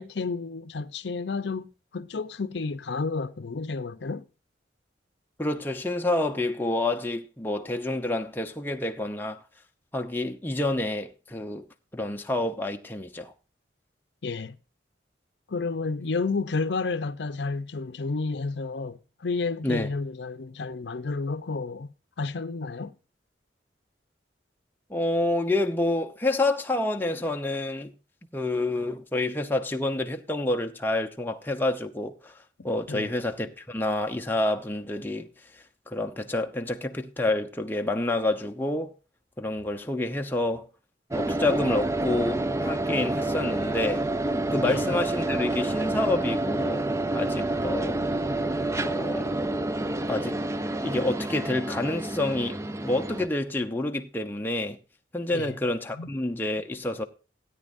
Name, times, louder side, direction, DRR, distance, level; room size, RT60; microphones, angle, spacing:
voice 1, 0.0-4.2 14.2-14.6 15.5-21.9 22.2-22.9 32.9-33.1 44.6-44.8 55.3-55.6 56.0-56.1, left 4 dB, 70° left, 0.6 m, -31 dB
voice 2, 5.4-9.4 9.9-11.6 11.9-13.3 19.6-19.9 24.9-27.9 28.3-32.3 32.6-35.3 35.9-38.9 39.4-40.7 41.1-44.0 44.5-46.8 47.1-48.0 48.7-49.3 50.1-50.4 50.8-54.8 55.1-57.0, left 2 dB, 10° left, 0.9 m, -28 dB
sound 1, 41.1-53.3, right 2 dB, 15° right, 0.4 m, -28 dB
17.0 x 9.3 x 2.6 m
head